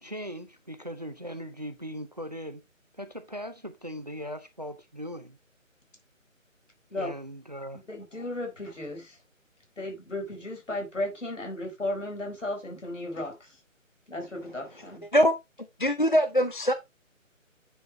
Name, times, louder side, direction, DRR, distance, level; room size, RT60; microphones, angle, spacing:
voice 1, 0.0-2.6 2.9-5.4 6.9-7.8, equal, 30° right, 0.6 m, -39 dB
voice 2, 7.9-9.2 9.8-13.5 14.1-15.0, left 1 dB, 65° left, 4.5 m, -35 dB
voice 3, 15.8-16.7, equal, 40° left, 0.4 m, -22 dB
9.5 x 5.7 x 3.2 m
figure-of-eight pair, 155°, 40 cm